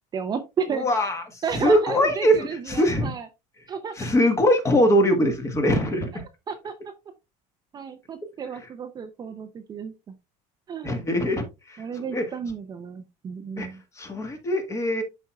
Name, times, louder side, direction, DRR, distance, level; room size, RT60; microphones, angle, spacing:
voice 1, 0.1-0.9 1.4-3.3 3.7-3.9 6.5-6.7 7.7-9.9 10.7-11.0 11.8-13.8, right 6 dB, 25° right, 8 dB, 0.6 m, -32 dB
voice 2, 0.7-3.1 4.0-6.1 10.8-12.3 13.6-13.7 14.0-15.0, equal, 20° left, 6 dB, 1.5 m, -22 dB
11.0 x 4.4 x 2.3 m, 0.24 s
cardioid pair, 150°, 16 cm